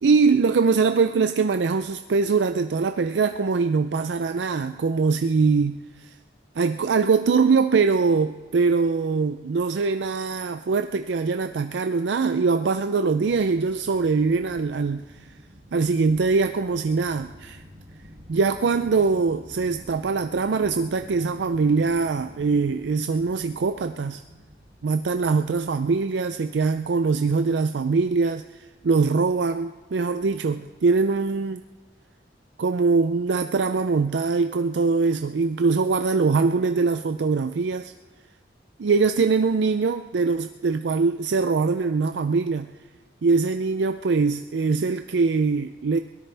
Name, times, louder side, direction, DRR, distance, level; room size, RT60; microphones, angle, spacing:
voice 1, 0.0-6.1 6.6-15.0 15.7-17.6 18.3-24.2 24.8-28.4 28.8-31.6 32.6-37.9 38.8-42.7 43.2-46.0, right 4 dB, 85° right, 9 dB, 0.5 m, -22 dB
sound 1, 13.2-30.6, equal, 40° right, 2.1 m, -48 dB
22.0 x 18.0 x 3.4 m, 1.3 s
head